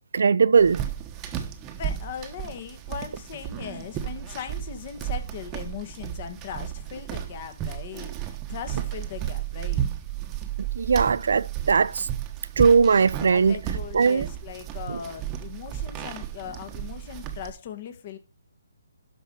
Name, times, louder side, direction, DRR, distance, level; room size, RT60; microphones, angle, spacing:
voice 1, 0.1-0.8 10.7-12.1 12.6-13.6 13.9-14.3 14.9-15.0, right 5 dB, 70° right, 0.6 m, -19 dB
sound 1, 0.6-17.5, right 10 dB, 15° right, 1.2 m, -33 dB
voice 2, 1.7-9.9 13.3-18.2, left 8 dB, 35° left, 1.7 m, -39 dB
12.0 x 5.6 x 5.4 m
hypercardioid pair, 160°, 0 cm